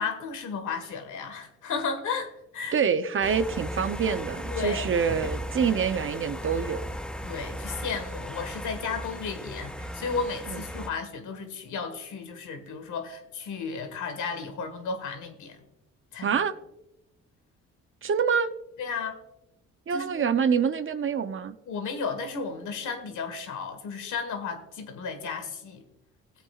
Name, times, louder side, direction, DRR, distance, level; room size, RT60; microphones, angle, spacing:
voice 1, 0.0-2.8 4.5-4.9 7.2-15.6 16.1-16.4 18.8-19.2 19.9-20.3 21.7-25.8, left 5 dB, 80° left, 7 dB, 1.7 m, -34 dB
voice 2, 2.7-6.8 10.5-10.6 16.2-16.5 18.0-18.5 19.9-21.6, right 6 dB, 45° right, 11 dB, 0.7 m, -26 dB
sound 1, 3.2-10.9, equal, 5° left, 0.5 m, -36 dB
17.5 x 7.9 x 2.4 m, 0.87 s
cardioid pair, 90°, 30 cm